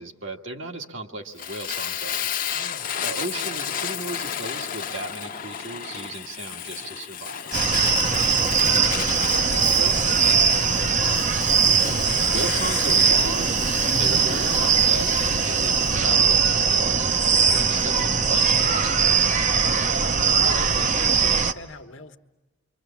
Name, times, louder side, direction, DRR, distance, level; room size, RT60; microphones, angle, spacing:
voice 1, 0.0-2.3 3.0-7.5 11.9-13.6 14.0-16.5 16.7-19.3, right 2 dB, 65° right, 1.8 m, -36 dB
Fire, 1.4-16.0, left 8 dB, 40° left, 0.9 m, -32 dB
voice 2, 2.5-3.0 8.5-8.9 9.2-11.5 20.4-22.2, left 1 dB, 65° left, 1.3 m, -40 dB
sound 1, 7.5-21.5, right 6 dB, 35° right, 0.8 m, -21 dB
29.0 x 25.0 x 7.2 m
head